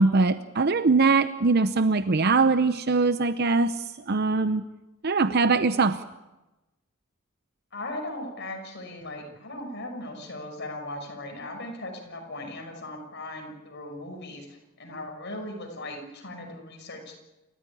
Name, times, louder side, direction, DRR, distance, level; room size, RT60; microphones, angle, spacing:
voice 1, 0.0-4.6 5.0-6.0, right 3 dB, 50° right, 12 dB, 0.7 m, -22 dB
voice 2, 7.7-17.2, left 1 dB, 55° left, 3 dB, 6.1 m, -38 dB
29.0 x 15.0 x 9.9 m, 1.0 s
head